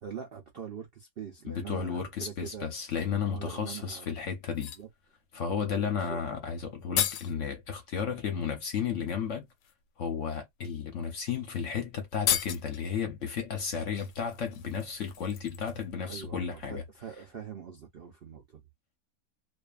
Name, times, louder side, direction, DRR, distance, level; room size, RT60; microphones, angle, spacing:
voice 1, 0.0-2.7 3.2-4.2 4.7-4.9 5.7-6.5 16.0-18.6, right 7 dB, 85° right, 0.5 m, -43 dB
voice 2, 1.4-4.7 5.3-9.5 10.0-16.8, left 7 dB, 55° left, 0.9 m, -33 dB
Glass on Glass, 3.6-3.7 4.4-4.9 6.4-6.5 6.7-7.4 8.8-8.9 9.5-9.7 10.6-10.7 11.1-11.2 11.5-11.6 12.1-12.8 13.9-16.0 16.3-16.4, left 10 dB, 80° left, 1.2 m, -34 dB
2.6 x 2.4 x 2.3 m
omnidirectional pair, 1.9 m